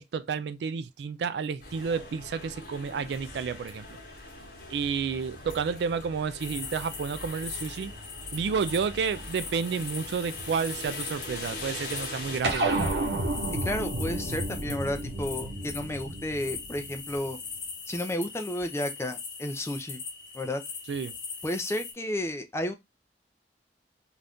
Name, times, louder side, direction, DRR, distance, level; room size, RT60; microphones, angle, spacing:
voice 1, 0.0-4.0 4.7-7.9 8.3-12.9 20.9-21.1, right 6 dB, 65° right, 0.3 m, -31 dB
sound 1, 1.6-12.4, left 2 dB, 55° left, 1.1 m, -42 dB
sound 2, 6.4-21.9, left 5 dB, 85° left, 1.1 m, -41 dB
sound 3, 12.4-17.2, right 2 dB, 90° right, 0.9 m, -31 dB
voice 2, 13.6-17.4 17.9-20.0 20.3-20.6 21.4-22.7, left 1 dB, 15° left, 0.4 m, -32 dB
2.6 x 2.4 x 3.4 m
head